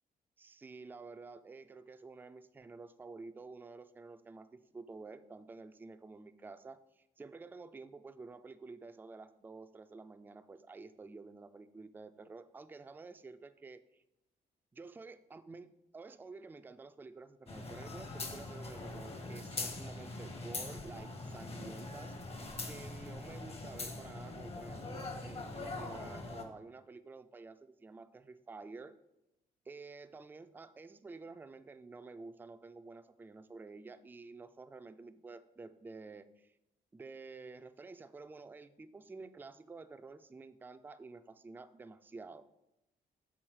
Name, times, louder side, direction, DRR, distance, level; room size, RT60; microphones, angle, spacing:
voice 1, 0.4-14.0 14.7-22.1 22.6-28.9 29.7-36.5 36.9-42.5, right 3 dB, 10° right, 10 dB, 0.3 m, -50 dB
sound 1, 17.5-26.4, left 3 dB, 40° left, 0.9 m, -43 dB
6.2 x 3.6 x 4.7 m, 0.87 s
cardioid pair, 90°, 16 cm